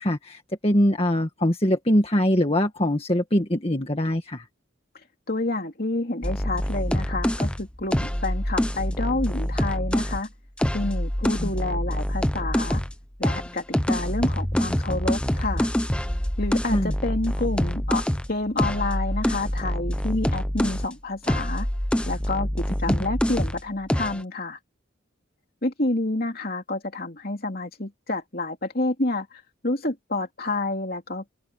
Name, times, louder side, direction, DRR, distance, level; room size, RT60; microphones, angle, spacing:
voice 1, 0.0-4.4 11.4-11.5 16.7-16.9 22.9-23.0, equal, 30° left, 1.9 m, -23 dB
voice 2, 5.3-10.3 10.7-12.8 13.2-15.7 16.4-21.7 22.1-24.6 25.6-31.3, left 2 dB, 45° left, 3.1 m, -29 dB
sound 1, 6.2-10.2 10.6-12.9 13.2-20.9 21.2-23.6 23.9-24.2, equal, 5° left, 0.8 m, -26 dB
open air
head